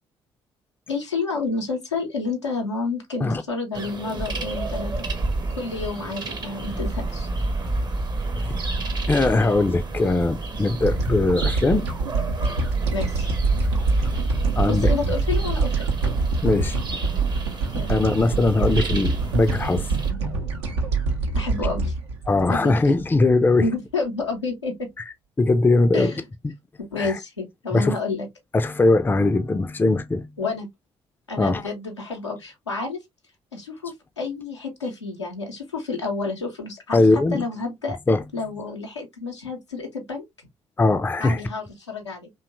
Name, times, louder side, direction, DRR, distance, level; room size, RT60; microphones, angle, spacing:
voice 1, 0.9-4.9 5.5-7.3 12.9-13.3 14.6-15.9 17.7-17.9 21.3-21.9 22.5-22.7 23.6-24.9 25.9-26.2 26.8-28.3 30.4-30.7 31.3-33.0 33.5-37.0 37.3-38.0 38.3-40.2 41.2-42.3, left 3 dB, 85° left, 0.6 m, -29 dB
sound 1, 3.7-20.1, right 2 dB, 30° right, 0.6 m, -29 dB
voice 2, 9.1-11.9 14.6-14.9 16.4-16.8 17.9-19.9 22.3-23.7 25.4-26.1 27.0-27.2 27.7-28.0 28.5-30.3 31.4-31.6 36.9-37.4 38.1-38.2 40.8-41.4, left 2 dB, 15° left, 0.4 m, -20 dB
sound 2, 10.8-23.3, right 4 dB, 75° right, 0.5 m, -26 dB
2.8 x 2.2 x 2.5 m
figure-of-eight pair, 45°, 14 cm